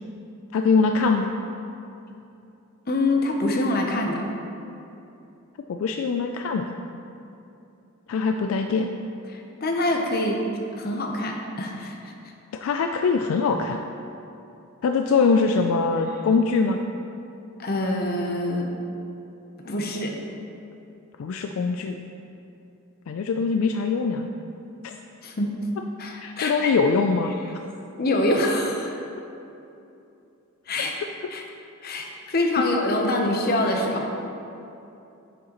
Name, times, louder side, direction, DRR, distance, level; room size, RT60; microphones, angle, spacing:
voice 1, 0.5-1.3 5.7-6.8 8.1-8.9 12.6-13.8 14.8-16.8 21.2-22.0 23.1-24.3 24.8-24.9 26.2-27.3, left 4 dB, 70° left, 4 dB, 0.3 m, -22 dB
voice 2, 2.9-4.2 9.3-10.4 10.8-12.0 17.6-18.7 19.6-20.2 25.2-25.5 26.0-26.8 28.0-29.0 30.7-30.9 31.3-31.4 31.8-34.2, left 1 dB, 45° left, 2 dB, 0.8 m, -25 dB
8.9 x 6.3 x 3.0 m, 2.8 s
head